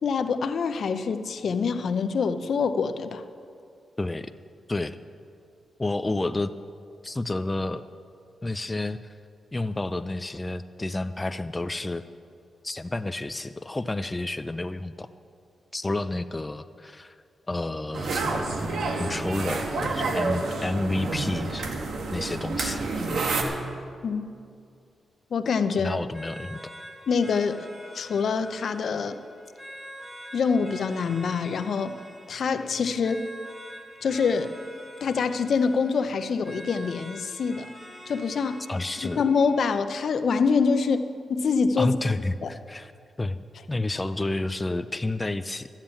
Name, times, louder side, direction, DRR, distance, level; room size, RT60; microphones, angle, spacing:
voice 1, 0.0-3.2 24.0-24.2 25.3-26.0 27.1-27.7 27.9-29.2 30.3-32.0 32.3-33.3 34.0-34.5 35.0-37.7 38.1-38.6 39.0-42.0 42.4-42.5, left 5 dB, 65° left, 10 dB, 0.7 m, -25 dB
voice 2, 4.0-4.3 4.7-5.0 5.8-6.5 7.0-7.8 8.4-9.1 9.5-12.0 12.6-15.1 15.7-17.2 17.5-18.5 19.0-21.7 22.1-23.1 25.8-26.6 38.7-39.2 41.8-42.9 43.2-43.4 43.7-45.7, left 2 dB, 20° left, 10 dB, 0.5 m, -30 dB
sound 1, 17.9-23.4, right 3 dB, 75° right, 1.4 m, -29 dB
sound 2, 26.1-39.7, equal, 15° right, 3.1 m, -45 dB
13.0 x 7.4 x 8.9 m, 2.4 s
cardioid pair, 75°, 0 cm